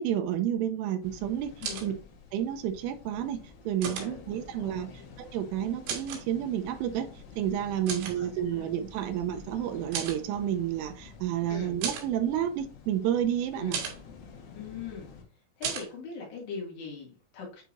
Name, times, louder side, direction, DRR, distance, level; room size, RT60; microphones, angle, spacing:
voice 1, 0.0-1.5 1.8-1.9 2.3-3.4 3.7-4.9 5.2-7.1 7.4-13.8, right 10 dB, 90° right, 8 dB, 3.2 m, -30 dB
sound 1, 1.0-15.2, left 5 dB, 80° left, 4.2 m, -50 dB
voice 2, 1.6-2.0 3.9-5.1 7.8-8.7 11.5-11.8 13.5-13.8 14.6-15.1 15.6-17.6, left 5 dB, 60° left, -3 dB, 4.3 m, -41 dB
sound 2, 1.6-1.9 3.8-4.1 5.9-6.2 7.9-8.2 9.9-10.2 11.8-12.1 13.7-14.0 15.6-15.9, right 7 dB, 70° right, 4.0 m, -34 dB
9.0 x 4.6 x 2.7 m, 0.35 s
omnidirectional pair, 5.7 m